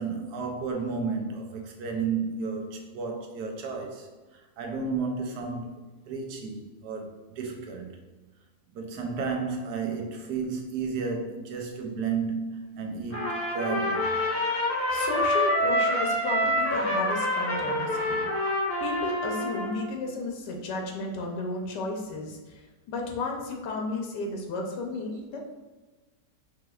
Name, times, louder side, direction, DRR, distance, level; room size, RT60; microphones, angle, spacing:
voice 1, 0.0-4.1 4.6-5.8 6.1-7.9 8.7-13.2 13.5-14.1, right 5 dB, 75° right, 3 dB, 1.2 m, -32 dB
Trumpet, 13.1-19.8, left 1 dB, 15° left, 0.5 m, -27 dB
voice 2, 14.9-18.2 18.8-22.6 22.9-25.4, left 3 dB, 85° left, 1 dB, 1.3 m, -33 dB
4.8 x 3.3 x 2.4 m, 1.3 s
omnidirectional pair, 1.8 m